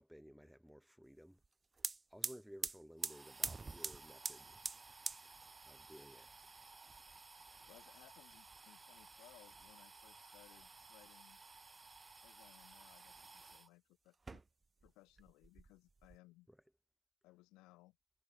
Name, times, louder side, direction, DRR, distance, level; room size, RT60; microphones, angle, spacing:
voice 1, 0.0-1.4 2.1-4.6 5.7-6.3 16.5-16.7, equal, ahead, 5.8 m, -57 dB
sound 1, 1.4-1.5 1.7-13.7 14.1-14.9 15.2-16.2, right 3 dB, 25° right, 0.7 m, -48 dB
voice 2, 7.6-11.4 12.2-14.4 14.8-16.5 17.2-18.0, left 20 dB, 90° left, 3.0 m, -64 dB
cardioid pair, 95°, 0 cm